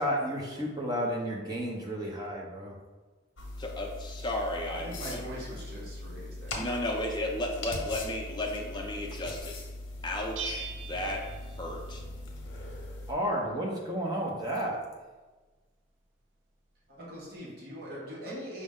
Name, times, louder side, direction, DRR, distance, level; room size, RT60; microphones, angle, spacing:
voice 1, 0.0-2.7 13.1-14.8, equal, 20° right, -2 dB, 0.6 m, -32 dB
sound 1, 3.4-13.1, left 2 dB, 75° left, 0.7 m, -40 dB
voice 2, 3.6-5.2 6.5-9.5 10.0-11.3 11.6-12.0, left 1 dB, 25° left, 0 dB, 0.5 m, -34 dB
voice 3, 4.7-6.6 16.9-18.6, equal, 55° right, -6 dB, 1.0 m, -42 dB
Bell, 10.4-12.2, right 6 dB, 75° right, 0.4 m, -41 dB
5.1 x 2.1 x 3.6 m, 1.3 s
head